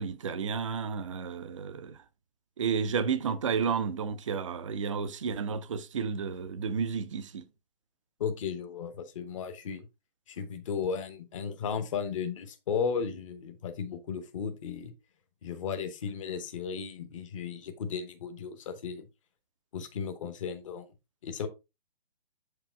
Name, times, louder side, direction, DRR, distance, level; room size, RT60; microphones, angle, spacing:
voice 1, 0.0-2.0 2.6-7.4, right 6 dB, 35° right, 0.5 m, -32 dB
voice 2, 8.2-9.9 10.3-14.9 15.4-19.0 19.7-20.9 21.2-21.5, left 6 dB, 30° left, 0.9 m, -35 dB
7.1 x 4.8 x 3.3 m
figure-of-eight pair, 135°, 30 cm